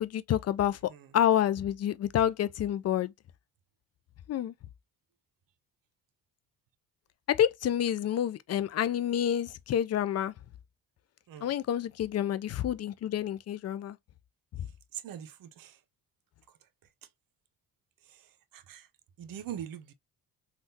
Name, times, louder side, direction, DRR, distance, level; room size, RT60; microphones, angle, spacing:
voice 1, 0.0-3.1 4.3-4.5 7.3-10.3 11.4-14.0 14.6-14.7, left 10 dB, 40° left, 0.4 m, -28 dB
voice 2, 14.9-15.8 18.1-18.3 18.5-18.9 19.2-19.9, right 10 dB, 60° right, 0.8 m, -42 dB
3.5 x 2.4 x 2.7 m
supercardioid pair, 75°, 38 cm